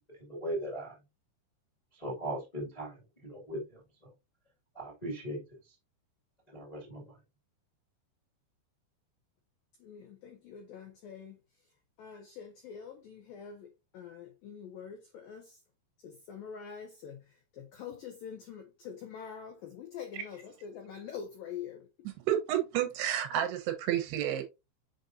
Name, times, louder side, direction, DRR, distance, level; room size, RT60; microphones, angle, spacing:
voice 1, 0.2-1.0 1.9-3.8 4.7-5.4 6.5-7.1, right 1 dB, 20° left, 1.0 m, -38 dB
voice 2, 9.8-11.4 12.0-15.6 16.0-22.1, left 7 dB, 85° left, 2.0 m, -45 dB
voice 3, 22.3-24.4, right 11 dB, 70° right, 2.8 m, -30 dB
6.9 x 5.3 x 2.7 m
omnidirectional pair, 5.4 m